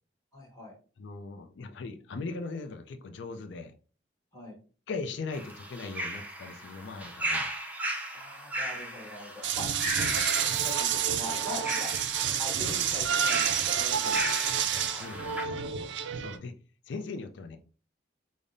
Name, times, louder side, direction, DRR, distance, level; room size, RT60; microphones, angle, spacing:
voice 1, 0.3-0.8 4.3-4.6 8.1-9.7 9.9-11.9 12.4-15.5, left 1 dB, 15° left, -2 dB, 1.2 m, -43 dB
voice 2, 1.0-3.7 4.9-7.5 9.6-9.7 12.6-12.8 14.9-15.5 16.2-16.5 16.9-17.6, left 4 dB, 70° left, 7 dB, 0.4 m, -39 dB
sound 1, 5.3-15.4, right 1 dB, 10° right, 0.4 m, -36 dB
sound 2, 9.4-16.4, right 8 dB, 70° right, 0.4 m, -29 dB
5.1 x 2.1 x 2.5 m, 0.38 s
head